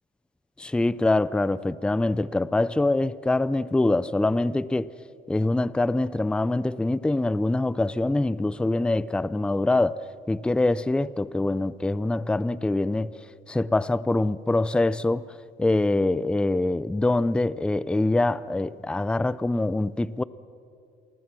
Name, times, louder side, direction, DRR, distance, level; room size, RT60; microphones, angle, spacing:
voice 1, 0.6-4.9 5.3-10.0 10.3-13.1 13.5-20.2, left 2 dB, 5° left, 0.4 m, -24 dB
28.0 x 20.5 x 6.0 m
cardioid pair, 110°, 17 cm